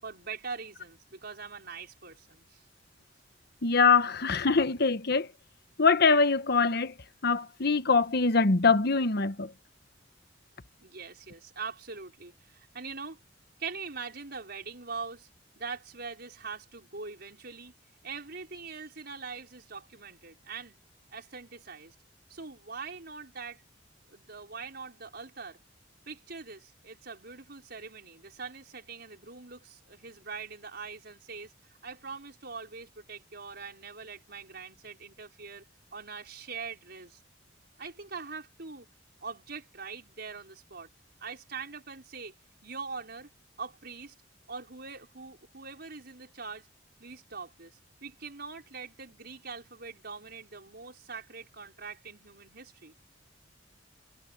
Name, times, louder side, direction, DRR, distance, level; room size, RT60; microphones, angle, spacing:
voice 1, 0.0-2.6 10.8-13.2 13.6-15.3 15.6-17.7 18.0-20.8 21.1-22.0 22.3-23.6 24.1-25.6 26.1-31.5 31.8-35.7 35.9-37.2 37.8-38.9 39.2-40.9 41.2-42.3 42.6-43.3 43.6-44.1 44.5-46.7 47.0-52.9, right 5 dB, 60° right, 5.3 m, -42 dB
voice 2, 3.6-5.3 5.8-6.9 7.2-9.5, left 4 dB, 60° left, 1.2 m, -23 dB
head